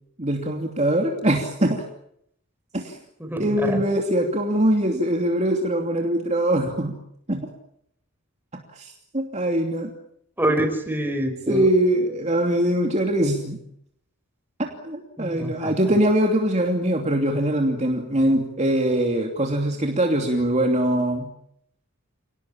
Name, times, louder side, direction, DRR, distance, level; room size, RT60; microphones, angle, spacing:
voice 1, 0.2-1.8 2.7-3.0 3.4-7.0 7.3-7.5 8.8-9.9 11.5-13.6 14.6-21.3, right 1 dB, 30° right, 2 dB, 2.9 m, -22 dB
voice 2, 3.2-3.8 10.4-11.7 15.2-15.7, right 1 dB, 10° right, 5 dB, 5.2 m, -26 dB
29.0 x 19.5 x 8.8 m, 0.73 s
head